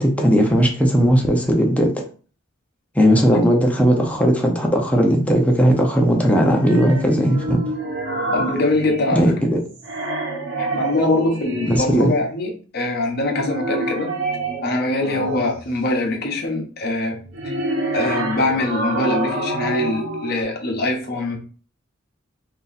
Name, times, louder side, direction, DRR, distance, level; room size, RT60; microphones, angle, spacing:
voice 1, 0.0-2.0 2.9-7.7 9.1-9.6 11.7-12.1, equal, 5° left, 1 dB, 0.7 m, -17 dB
sound 1, 6.6-9.4 9.7-12.0 13.2-15.7 17.1-20.4, right 2 dB, 65° right, 1.0 m, -27 dB
voice 2, 8.3-9.3 10.6-14.1 14.6-17.2 17.4-17.6 17.9-21.4, left 2 dB, 50° left, 2 dB, 0.9 m, -23 dB
3.0 x 2.7 x 4.0 m, 0.39 s
head